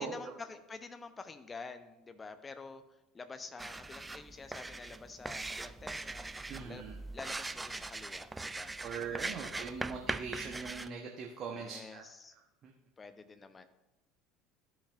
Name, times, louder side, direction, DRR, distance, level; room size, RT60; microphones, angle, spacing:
voice 1, 0.0-6.3 6.6-6.8 7.1-8.7 9.0-9.7 11.5-12.4 13.0-13.6, left 4 dB, 20° left, 9 dB, 0.7 m, -48 dB
sound 1, 3.6-10.9, right 2 dB, 10° right, 0.3 m, -41 dB
voice 2, 6.5-6.9 8.8-12.0 12.6-12.7, right 5 dB, 40° right, 1 dB, 0.9 m, -41 dB
13.0 x 5.4 x 2.5 m, 0.97 s
figure-of-eight pair, 65°, 0 cm